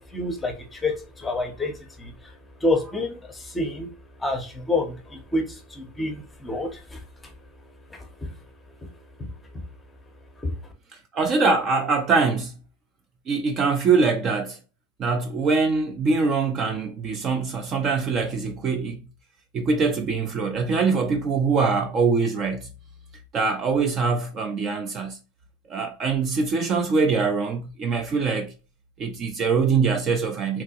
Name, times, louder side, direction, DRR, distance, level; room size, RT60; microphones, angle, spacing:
voice 1, 0.0-2.3 2.6-3.9 4.2-7.0 7.9-8.3 9.2-9.3 10.4-10.7, left 2 dB, 10° left, 0.7 m, -28 dB
voice 2, 11.1-12.6 13.3-14.6 15.0-19.0 19.5-22.7 23.3-25.2 25.7-28.5 29.0-30.6, right 4 dB, 30° right, 0.4 m, -23 dB
3.3 x 3.0 x 2.7 m
supercardioid pair, 150°, 0 cm